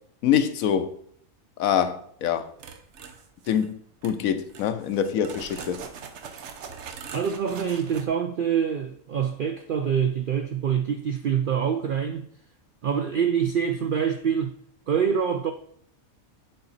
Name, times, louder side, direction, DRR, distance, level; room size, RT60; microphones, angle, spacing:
voice 1, 0.2-0.9 1.6-2.5 3.5-3.8 4.0-5.8, left 9 dB, 80° left, 1.1 m, -24 dB
sound 1, 2.6-3.7 4.0-4.2 4.5-8.1, right 6 dB, 60° right, 1.0 m, -42 dB
voice 2, 7.1-12.3 12.8-14.5 14.9-15.5, right 7 dB, 80° right, 0.4 m, -25 dB
7.8 x 4.0 x 4.0 m
omnidirectional pair, 1.5 m